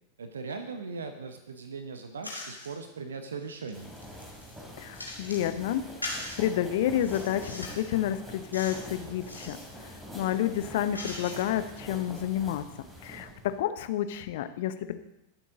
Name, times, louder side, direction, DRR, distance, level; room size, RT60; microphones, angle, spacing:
voice 1, 0.2-3.9, right 4 dB, 70° right, 8 dB, 1.1 m, -39 dB
sound 1, 2.2-2.7 3.3-5.5 6.0-6.4 6.9-7.9 8.5-8.9 9.2-9.6 10.2-11.7, left 2 dB, 85° left, 2.5 m, -41 dB
sound 2, 3.7-13.6, equal, 5° right, 3.4 m, -45 dB
voice 2, 4.8-5.8 6.4-9.6 10.1-12.7 13.0-15.0, left 11 dB, 55° left, 11 dB, 0.9 m, -29 dB
21.5 x 8.0 x 3.8 m, 0.89 s
figure-of-eight pair, 90°, 0 cm